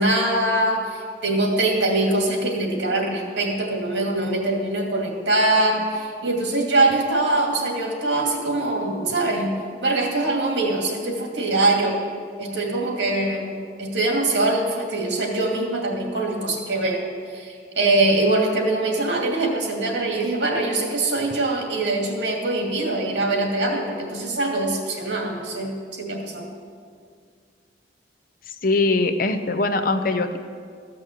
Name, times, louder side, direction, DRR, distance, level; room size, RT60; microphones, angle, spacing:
voice 1, 0.0-9.5 9.8-12.0 12.4-13.5 13.8-26.5, right 2 dB, 80° right, 0 dB, 2.4 m, -23 dB
voice 2, 28.5-30.4, left 3 dB, 50° left, 8 dB, 0.7 m, -22 dB
14.5 x 6.2 x 7.4 m, 2.1 s
head